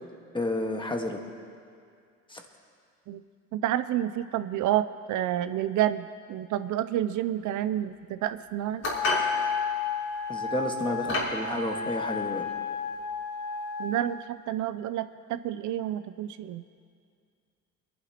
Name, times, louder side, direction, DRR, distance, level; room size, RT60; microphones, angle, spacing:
voice 1, 0.3-1.2 2.3-2.4 10.3-12.4, left 2 dB, 15° left, 3 dB, 1.5 m, -31 dB
voice 2, 3.5-8.8 13.8-16.6, right 12 dB, 80° right, 12 dB, 0.5 m, -29 dB
sound 1, 8.8-9.3 10.3-10.5 11.1-11.4, left 2 dB, 55° left, 3.7 m, -28 dB
Wind instrument woodwind instrument, 8.9-14.1, left 5 dB, 80° left, 1.2 m, -32 dB
24.5 x 11.5 x 2.9 m, 2.2 s
cardioid pair, 90°, 30 cm